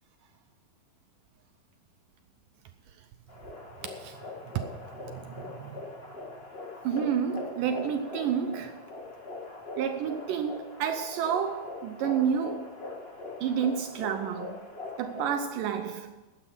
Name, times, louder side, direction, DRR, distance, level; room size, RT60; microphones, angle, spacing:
sound 1, 3.3-15.4, left 3 dB, 45° left, 0.7 m, -41 dB
voice 1, 5.1-5.7 6.8-8.8 9.8-12.7 13.4-14.5 15.0-16.1, right 8 dB, 75° right, 2.0 m, -30 dB
12.0 x 9.1 x 6.1 m
omnidirectional pair, 4.4 m